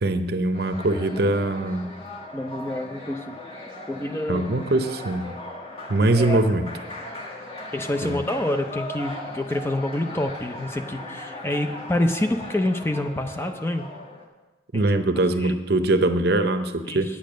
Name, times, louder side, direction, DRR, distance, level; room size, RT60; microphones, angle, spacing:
voice 1, 0.0-1.9 4.3-5.3 5.9-6.7 8.0-8.2 14.7-17.1, right 2 dB, 55° right, 9 dB, 0.7 m, -22 dB
sound 1, 0.5-14.3, left 1 dB, 30° left, 1.5 m, -38 dB
voice 2, 2.3-3.4 3.9-4.5 6.0-6.4 7.7-13.9 14.7-14.9 15.4-15.6 16.9-17.2, left 1 dB, 15° left, 6 dB, 0.5 m, -27 dB
9.2 x 8.6 x 6.3 m, 1.2 s
head